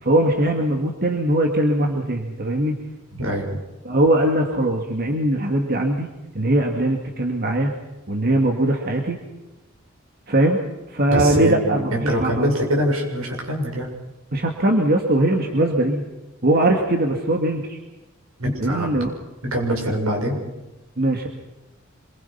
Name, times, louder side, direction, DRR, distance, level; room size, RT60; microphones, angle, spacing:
voice 1, 0.0-2.7 3.8-6.1 6.3-7.7 8.1-9.2 10.3-10.6 10.9-12.5 14.3-16.0 16.4-17.8 18.6-19.1 21.0-21.3, right 1 dB, 50° right, 2 dB, 2.3 m, -20 dB
voice 2, 3.2-3.5 11.1-13.9 18.4-18.9 19.4-20.4, equal, 85° right, 1 dB, 6.9 m, -23 dB
26.5 x 23.0 x 5.9 m, 1.1 s
head